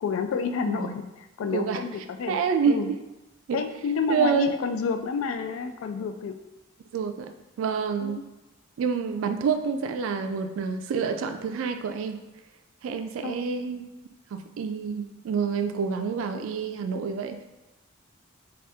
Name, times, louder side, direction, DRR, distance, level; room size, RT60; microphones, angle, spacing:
voice 1, 0.0-2.4 2.7-2.9 3.5-6.4 8.0-8.2 13.2-13.4, left 5 dB, 85° left, 8 dB, 0.3 m, -29 dB
voice 2, 2.3-3.0 3.5-3.6 4.1-4.6 6.9-7.3 7.6-8.2 8.8-12.2 12.8-13.9 14.3-17.4, right 6 dB, 75° right, 7 dB, 0.3 m, -27 dB
3.3 x 2.3 x 2.7 m, 1.1 s
head